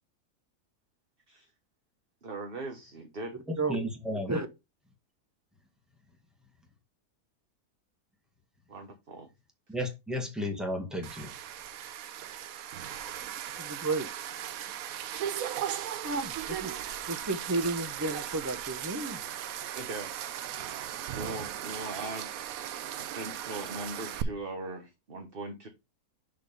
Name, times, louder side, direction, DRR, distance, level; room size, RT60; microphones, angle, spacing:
voice 1, 2.2-3.3 8.7-9.3 19.7-20.5 21.1-22.3 23.0-25.7, right 2 dB, 40° right, 1.3 m, -40 dB
voice 2, 3.5-4.4 9.7-11.4, equal, ahead, 1.8 m, -33 dB
sound 1, 11.0-24.2, right 11 dB, 70° right, 1.0 m, -37 dB
voice 3, 13.6-14.1 16.0-16.7 17.1-19.2, right 3 dB, 20° right, 0.4 m, -32 dB
6.8 x 4.0 x 5.2 m
omnidirectional pair, 1.7 m